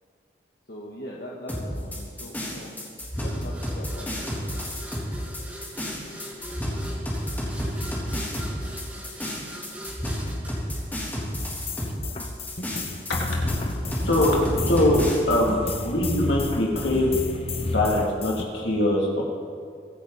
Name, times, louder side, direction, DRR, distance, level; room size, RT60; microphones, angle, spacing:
voice 1, 0.7-2.7 3.2-4.3, left 1 dB, 60° left, -4 dB, 1.8 m, -40 dB
sound 1, 1.5-15.2, equal, 10° left, 3.7 m, -31 dB
sound 2, 3.1-11.6, equal, 10° right, 2.3 m, -42 dB
sound 3, 11.4-18.4, left 2 dB, 35° left, 1.0 m, -30 dB
voice 2, 14.0-17.2 17.6-19.2, left 1 dB, 80° left, -3 dB, 3.2 m, -23 dB
24.5 x 9.9 x 4.3 m, 2.2 s
head